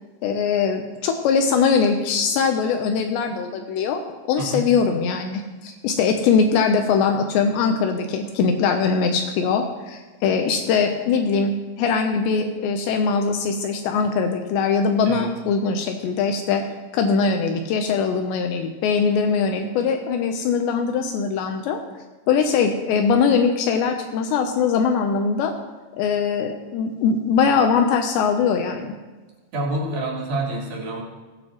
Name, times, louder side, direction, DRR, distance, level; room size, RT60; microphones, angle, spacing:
voice 1, 0.2-4.0 4.3-11.5 11.8-16.6 16.9-21.8 22.3-25.5 26.0-28.9, left 5 dB, 75° left, 5 dB, 2.8 m, -21 dB
voice 2, 29.5-31.0, right 1 dB, 50° right, -3 dB, 4.8 m, -27 dB
21.5 x 9.3 x 3.0 m, 1.3 s
omnidirectional pair, 5.5 m